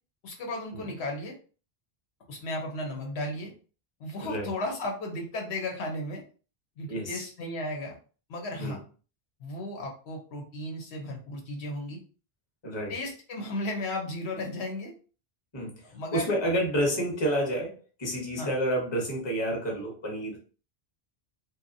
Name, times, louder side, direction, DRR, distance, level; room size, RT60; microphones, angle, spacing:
voice 1, 0.2-1.4 2.3-3.5 4.0-6.2 6.8-8.0 8.3-8.8 9.4-12.0 12.9-14.9 15.9-16.3 18.4-18.5, left 1 dB, 90° left, 1 dB, 1.1 m, -35 dB
voice 2, 6.9-7.2 8.6-8.8 12.6-12.9 15.5-20.4, right 1 dB, 30° left, -1 dB, 0.8 m, -30 dB
2.8 x 2.2 x 2.6 m, 0.37 s
omnidirectional pair, 1.1 m